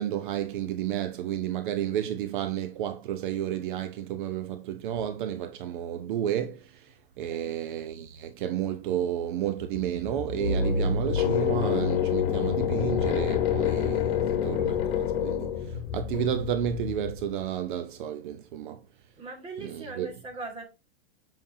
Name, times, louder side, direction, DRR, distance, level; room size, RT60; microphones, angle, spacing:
voice 1, 0.0-18.8 19.6-20.1, right 10 dB, 50° right, 0.7 m, -31 dB
sound 1, 9.6-17.4, left 7 dB, 60° left, 1.3 m, -27 dB
voice 2, 19.2-20.7, right 3 dB, 20° right, 1.6 m, -40 dB
7.5 x 5.3 x 2.7 m
hypercardioid pair, 145°, 32 cm